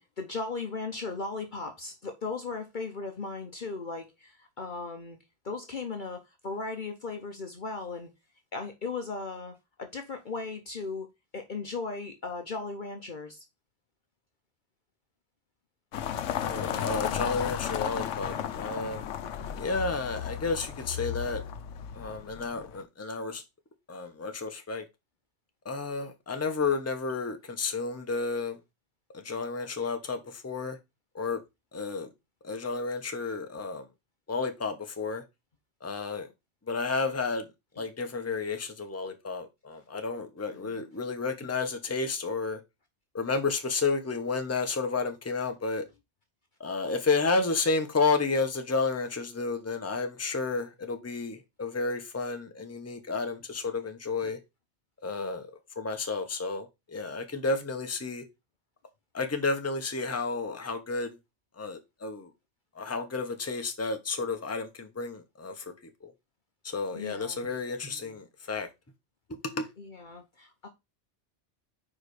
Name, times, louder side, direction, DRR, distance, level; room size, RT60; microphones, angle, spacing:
voice 1, 0.0-5.2 5.4-8.1 8.5-11.1 11.3-13.4 40.6-40.8 54.2-54.3 66.9-67.4 69.8-70.7, left 4 dB, 45° left, 0.9 m, -37 dB
sound 1, 15.9-22.8, left 9 dB, 90° left, 1.0 m, -34 dB
voice 2, 16.3-19.1 19.6-21.4 21.9-23.4 23.9-24.8 25.6-28.6 29.1-30.8 31.1-31.4 31.7-32.1 32.4-33.8 34.3-35.2 35.8-36.3 36.7-37.5 37.8-42.6 43.1-45.8 46.6-54.4 55.0-55.5 55.8-58.2 59.1-61.2 61.6-62.3 62.7-65.7 66.0-66.1 66.6-68.7 69.3-69.7, left 4 dB, 15° left, 0.9 m, -31 dB
4.9 x 4.8 x 4.8 m
omnidirectional pair, 1.2 m